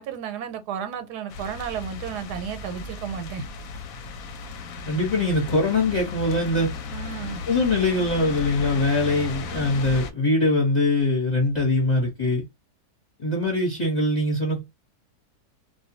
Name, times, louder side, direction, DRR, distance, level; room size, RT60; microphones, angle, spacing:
voice 1, 0.0-3.5 6.9-7.4, right 7 dB, 90° right, 1.2 m, -33 dB
sound 1, 1.3-10.1, left 4 dB, 70° left, 0.9 m, -35 dB
voice 2, 4.9-6.7 7.5-12.4 13.2-14.6, left 2 dB, 30° left, 0.9 m, -22 dB
2.5 x 2.2 x 2.7 m
omnidirectional pair, 1.7 m